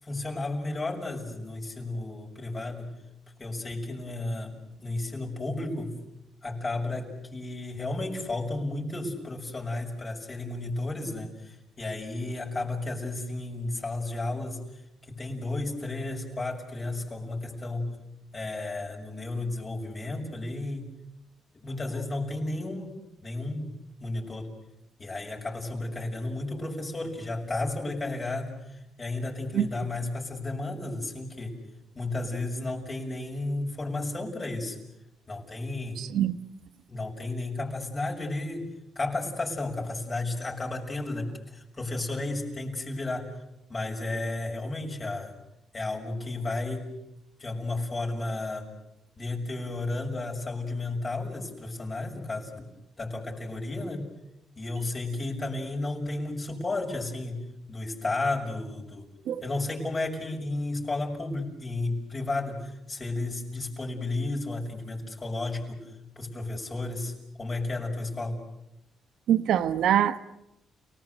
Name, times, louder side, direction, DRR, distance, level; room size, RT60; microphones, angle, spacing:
voice 1, 0.0-3.0 3.4-6.0 6.4-14.8 15.1-18.0 18.3-20.9 21.5-23.7 24.0-24.5 25.0-31.6 31.9-34.8 35.3-36.1 36.9-38.7 38.9-43.4 43.7-45.3 45.7-46.9 47.4-48.7 49.2-52.7 53.0-54.1 54.6-59.1 59.4-65.9 66.2-68.4, left 2 dB, 30° left, -1 dB, 6.3 m, -33 dB
voice 2, 36.0-36.4 59.3-59.4 69.3-70.2, right 10 dB, 75° right, 13 dB, 1.2 m, -24 dB
30.0 x 19.0 x 8.0 m, 0.85 s
cardioid pair, 90°, 0 cm